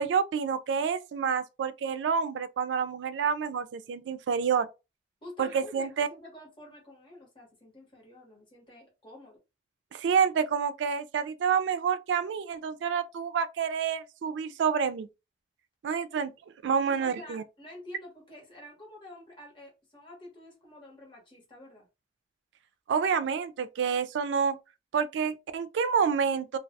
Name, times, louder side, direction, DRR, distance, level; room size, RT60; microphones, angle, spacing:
voice 1, 0.0-4.7 5.4-6.1 9.9-15.1 15.8-16.3 16.6-17.4 22.9-24.6 24.9-26.6, right 6 dB, 90° right, 0.3 m, -28 dB
voice 2, 5.2-9.4 16.1-16.2 16.8-21.9, left 1 dB, 30° left, 1.1 m, -49 dB
2.3 x 2.2 x 2.6 m
head